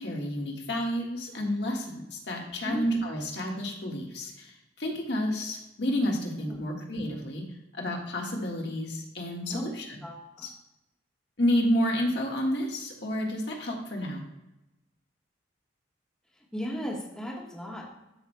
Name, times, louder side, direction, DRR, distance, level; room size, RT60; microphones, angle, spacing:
voice 1, 0.0-7.4 7.7-10.0 10.4-10.5 11.4-14.2, equal, 60° left, 0 dB, 1.6 m, -30 dB
voice 2, 2.4-2.9 6.5-6.6 9.5-9.7 10.0-10.5 16.5-18.0, equal, 5° left, -2 dB, 1.3 m, -36 dB
12.5 x 6.0 x 2.3 m, 0.94 s
head